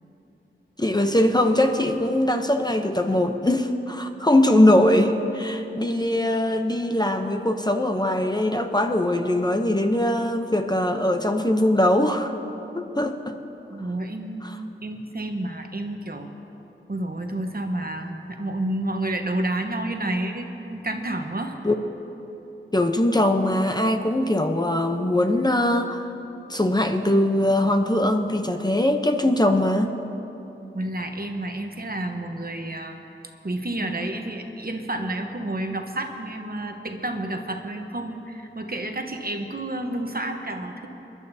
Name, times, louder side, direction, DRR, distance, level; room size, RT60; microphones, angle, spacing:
voice 1, 0.8-12.3 12.7-13.4 14.4-14.6 21.6-21.7 22.7-26.1 26.5-29.9, left 1 dB, 20° left, 5 dB, 0.7 m, -21 dB
voice 2, 13.7-14.5 14.8-16.3 16.9-21.6 30.7-33.0 33.4-40.9, right 1 dB, 45° right, 4 dB, 1.0 m, -30 dB
27.5 x 11.5 x 2.7 m, 3.0 s
wide cardioid pair, 65°, 21 cm